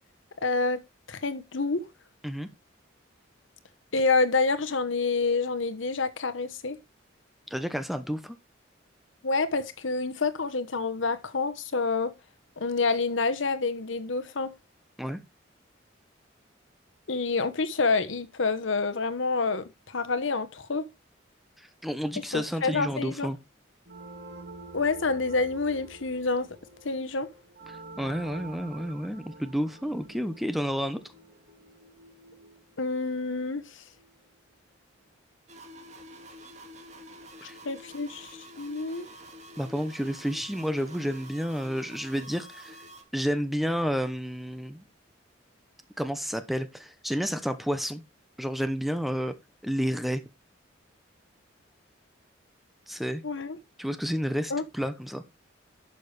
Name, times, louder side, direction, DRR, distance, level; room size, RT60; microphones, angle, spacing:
voice 1, 0.4-0.8 1.1-1.8 3.9-6.8 9.2-12.1 12.6-14.5 17.1-20.8 22.3-23.3 24.7-26.5 26.8-27.3 32.8-33.8 37.6-39.1 53.2-53.6 54.5-54.6, left 3 dB, 80° left, 1.1 m, -28 dB
voice 2, 7.5-8.4 15.0-15.2 21.8-23.4 27.7-31.0 37.4-37.6 39.6-42.8 43.1-44.8 46.0-48.0 48.4-49.3 49.6-50.2 52.9-53.2 53.8-55.2, equal, ahead, 0.9 m, -30 dB
sound 1, 23.8-34.3, right 2 dB, 60° right, 2.3 m, -47 dB
sound 2, 35.5-43.0, equal, 35° right, 2.1 m, -48 dB
11.5 x 6.6 x 3.3 m
head